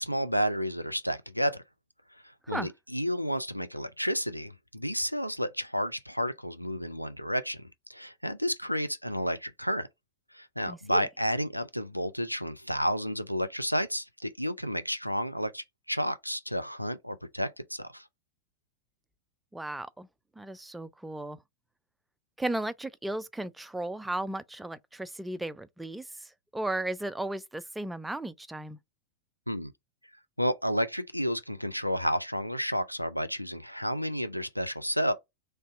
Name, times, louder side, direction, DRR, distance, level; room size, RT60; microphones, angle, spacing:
voice 1, 0.0-1.6 2.5-9.9 10.3-18.1 29.5-29.7 30.4-35.1, equal, 90° left, 0.4 m, -31 dB
voice 2, 10.7-11.1 19.5-20.1 20.4-21.4 22.4-28.8, right 1 dB, 5° right, 0.3 m, -35 dB
3.2 x 2.7 x 4.0 m
figure-of-eight pair, 90°, 0 cm